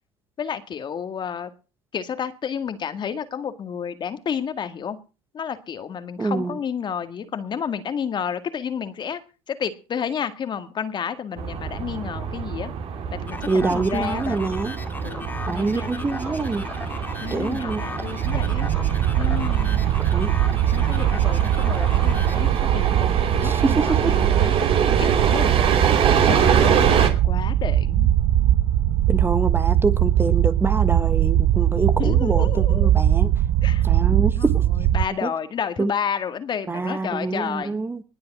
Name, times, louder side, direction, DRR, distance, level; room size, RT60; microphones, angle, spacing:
voice 1, 0.4-1.5 1.9-5.0 5.3-9.2 9.5-12.7 13.2-14.5 15.0-16.1 17.2-18.7 19.2-19.9 20.7-24.5 25.0-25.5 26.2-28.1 32.0-32.9 33.6-34.5 34.9-37.8, left 7 dB, 40° left, 10 dB, 1.9 m, -31 dB
voice 2, 6.2-6.6 13.5-14.7 15.5-16.7 17.3-17.8 20.1-20.4 23.4-24.2 29.1-33.3 33.8-34.6 35.2-35.3 35.8-35.9 36.7-38.0, right 3 dB, 20° right, 11 dB, 1.3 m, -25 dB
sound 1, 11.4-27.1, right 7 dB, 50° right, 2.8 m, -25 dB
sound 2, 13.3-23.0, left 3 dB, 15° left, 2.1 m, -37 dB
sound 3, 18.2-35.1, right 12 dB, 65° right, 1.0 m, -21 dB
20.0 x 7.7 x 6.1 m, 0.34 s
supercardioid pair, 90°, 12 cm